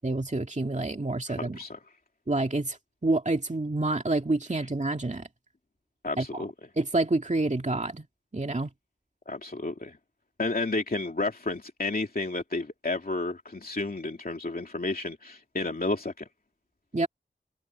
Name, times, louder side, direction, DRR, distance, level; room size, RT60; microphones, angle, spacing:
voice 1, 0.0-1.6 2.3-2.8 3.0-5.3 6.2-6.4 6.8-8.1 8.3-8.7 16.9-17.1, right 2 dB, 40° right, 2.3 m, -28 dB
voice 2, 1.3-1.8 6.0-6.5 9.3-10.0 10.4-16.3, left 2 dB, 55° left, 2.6 m, -31 dB
wide cardioid pair, 45°, 19 cm